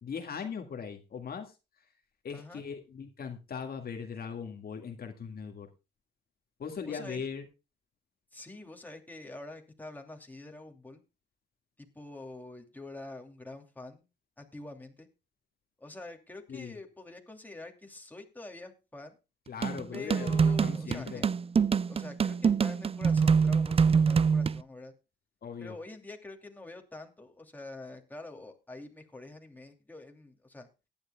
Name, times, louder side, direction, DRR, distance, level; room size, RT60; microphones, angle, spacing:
voice 1, 0.0-1.5 2.2-5.7 6.6-7.5 16.5-16.8 19.5-21.2 25.4-25.8, left 6 dB, 50° left, 4 dB, 1.9 m, -39 dB
voice 2, 2.3-2.6 6.9-7.2 8.3-11.0 11.8-14.1 14.4-15.1 15.8-19.2 19.9-21.3 21.9-24.9 25.6-30.7, left 2 dB, 10° left, 3 dB, 2.7 m, -46 dB
sound 1, 19.6-24.6, right 6 dB, 30° right, 0.5 m, -25 dB
18.5 x 11.0 x 2.3 m, 0.29 s
cardioid pair, 90°, 20 cm